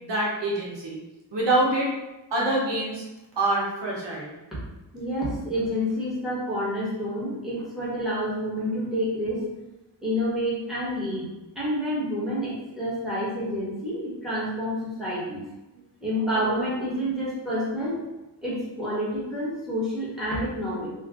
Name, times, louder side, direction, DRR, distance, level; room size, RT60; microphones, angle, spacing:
voice 1, 0.0-1.0 1.3-1.9 2.3-3.0 3.4-4.3, right 1 dB, 70° right, -5 dB, 1.0 m, -25 dB
voice 2, 4.9-9.4 10.0-11.3 11.5-15.4 15.7-18.0 18.4-20.9, equal, ahead, -9 dB, 1.3 m, -28 dB
3.2 x 2.4 x 3.7 m, 1.0 s
wide cardioid pair, 135°, 44 cm